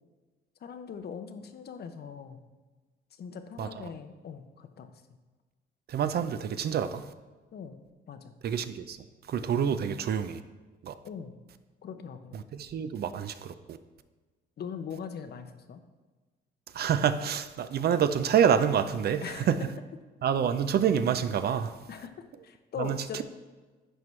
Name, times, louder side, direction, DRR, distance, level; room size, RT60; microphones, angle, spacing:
voice 1, 0.6-2.4 3.1-5.0 7.5-8.4 11.0-11.4 11.8-12.4 14.6-15.8 19.2-19.7 21.9-22.1 22.4-23.2, left 7 dB, 55° left, 0.7 m, -41 dB
voice 2, 5.9-7.0 8.4-9.0 9.3-10.4 10.8-10.9 12.5-13.8 16.7-19.6 20.2-21.7 22.8-23.2, right 8 dB, 55° right, 0.5 m, -27 dB
11.0 x 4.6 x 3.2 m
cardioid pair, 90°, 20 cm